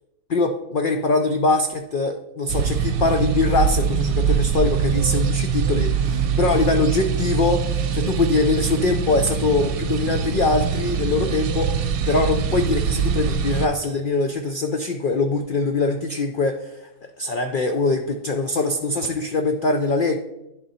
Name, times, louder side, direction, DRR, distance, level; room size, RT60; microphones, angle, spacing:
voice 1, 0.3-11.8 12.1-20.2, left 3 dB, 70° left, 6 dB, 0.4 m, -22 dB
sound 1, 2.5-13.7, right 6 dB, 85° right, 1.1 m, -23 dB
10.5 x 3.8 x 4.1 m, 0.91 s
omnidirectional pair, 1.4 m